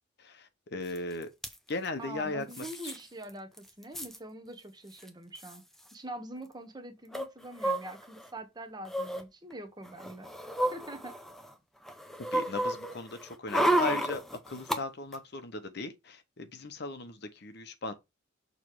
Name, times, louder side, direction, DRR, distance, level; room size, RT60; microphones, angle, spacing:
voice 1, 0.2-1.3 1.7-2.9 12.3-17.9, left 2 dB, 55° left, 0.9 m, -38 dB
sound 1, 1.0-1.1 1.2-1.5 2.5-3.0 3.3-3.4 3.6-4.2 5.0-5.1 5.4-5.6 7.1-8.3 8.9-9.2 9.9-11.5 11.9-14.8 15.1-15.2, right 1 dB, ahead, 0.7 m, -31 dB
voice 2, 2.0-5.6 5.9-11.2, right 1 dB, 20° right, 1.0 m, -44 dB
6.6 x 3.1 x 4.7 m
head